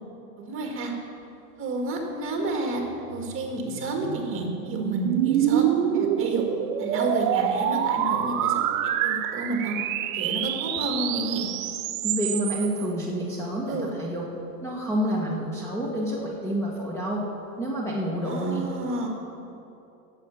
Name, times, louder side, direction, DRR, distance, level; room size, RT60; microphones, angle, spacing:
voice 1, 0.4-0.9 1.6-2.8 3.1-5.7 5.9-6.4 6.8-8.6 9.0-9.8 10.1-11.5 13.7-13.9 18.2-19.1, right 2 dB, 25° right, 1 dB, 2.1 m, -30 dB
sound 1, 3.1-12.9, right 10 dB, 55° right, 0.8 m, -26 dB
voice 2, 12.0-14.3 14.6-17.3 17.6-18.7, equal, 5° left, -5 dB, 1.3 m, -28 dB
11.0 x 7.5 x 7.1 m, 2.9 s
hypercardioid pair, 130°, 48 cm